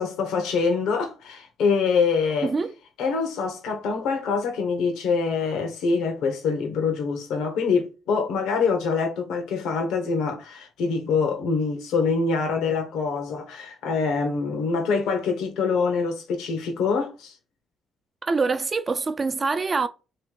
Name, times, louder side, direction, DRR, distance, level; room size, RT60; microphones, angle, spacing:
voice 1, 0.0-2.5 3.0-17.4, left 5 dB, 90° left, 1.1 m, -25 dB
voice 2, 2.4-2.7 18.2-19.9, right 4 dB, 35° right, 0.6 m, -25 dB
3.3 x 3.3 x 4.7 m
cardioid pair, 90°, 0 cm